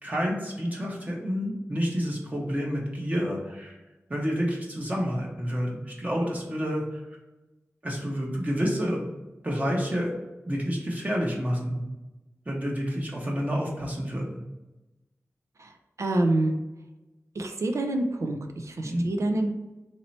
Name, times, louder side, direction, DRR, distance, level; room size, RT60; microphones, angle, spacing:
voice 1, 0.0-3.8 4.1-6.8 7.8-9.1 9.4-10.1 10.5-11.8 12.5-14.4 18.8-19.0, equal, 30° right, -2 dB, 1.0 m, -29 dB
voice 2, 16.0-16.5 17.4-18.4 18.6-19.5, right 2 dB, 75° right, 4 dB, 0.5 m, -26 dB
3.0 x 2.8 x 4.1 m, 1.1 s
wide cardioid pair, 70°, 5 cm